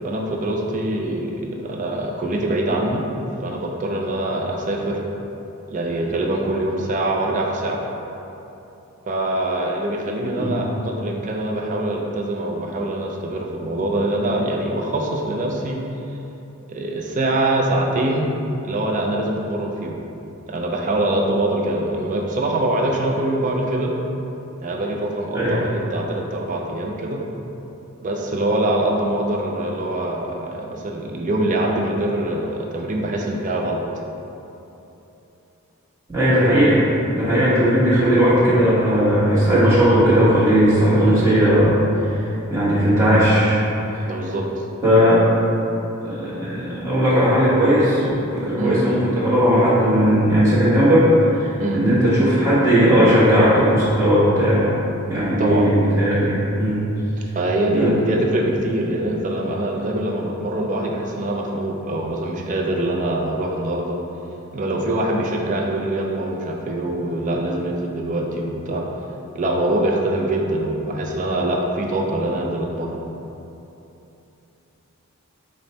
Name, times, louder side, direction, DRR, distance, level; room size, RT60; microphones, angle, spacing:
voice 1, 0.0-3.0 3.4-5.0 5.7-7.8 9.1-15.8 16.7-18.3 18.6-20.0 20.5-23.9 24.6-27.2 28.0-33.8 44.1-44.7 48.6-48.8 51.6-51.8 55.4-55.7 57.3-64.0 64.5-68.8 69.3-73.0, right 1 dB, 35° right, 0 dB, 0.4 m, -24 dB
voice 2, 36.1-36.8 37.1-41.8 42.0-43.6 44.8-45.2 46.0-48.0 48.3-54.7 55.1-56.8 57.7-58.0, equal, 15° right, -11 dB, 1.1 m, -17 dB
4.9 x 2.1 x 3.9 m, 2.9 s
head